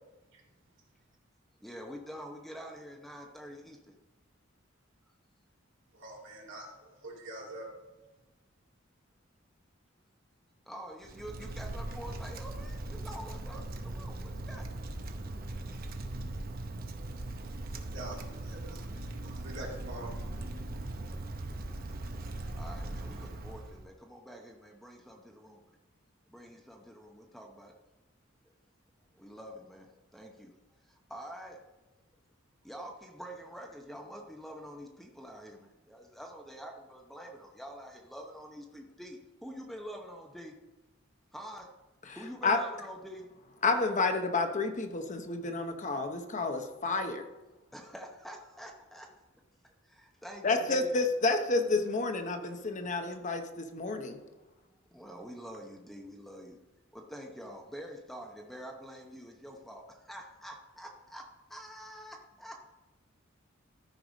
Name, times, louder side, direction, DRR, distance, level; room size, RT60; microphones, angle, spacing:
voice 1, 1.6-3.8 10.7-14.7 22.6-25.6 26.3-27.7 29.2-30.5 31.1-31.6 32.6-40.5 41.3-41.7 42.2-43.2 47.7-49.1 50.0-51.0 54.9-56.6 56.9-61.2 61.5-62.6, equal, ahead, 1 dB, 0.8 m, -46 dB
voice 2, 5.9-6.7 7.0-7.7 17.9-18.2 18.4-20.1, right 2 dB, 65° right, -2 dB, 2.5 m, -44 dB
Wind, 11.0-23.9, right 2 dB, 50° right, 0.8 m, -40 dB
voice 3, 43.6-47.2 50.4-54.2, left 3 dB, 40° left, 5 dB, 0.8 m, -30 dB
13.0 x 4.8 x 5.2 m, 1.1 s
head